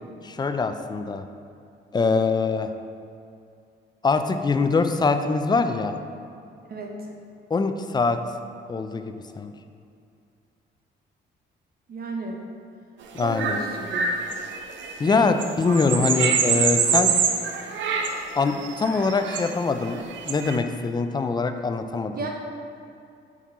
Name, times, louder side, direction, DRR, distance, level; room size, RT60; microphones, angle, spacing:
voice 1, 0.2-1.2 1.9-2.7 4.0-5.9 7.5-8.2 8.7-9.5 13.1-13.6 15.0-17.1 18.3-20.0 20.3-22.1, left 4 dB, 20° left, 8 dB, 0.4 m, -23 dB
voice 2, 6.7-7.1 11.9-12.4 13.2-14.1 22.1-22.3, right 3 dB, 50° right, 1 dB, 1.0 m, -33 dB
sound 1, 13.2-20.6, right 6 dB, 70° right, 0.6 m, -25 dB
5.4 x 4.9 x 4.1 m, 2.5 s
cardioid pair, 90°, 20 cm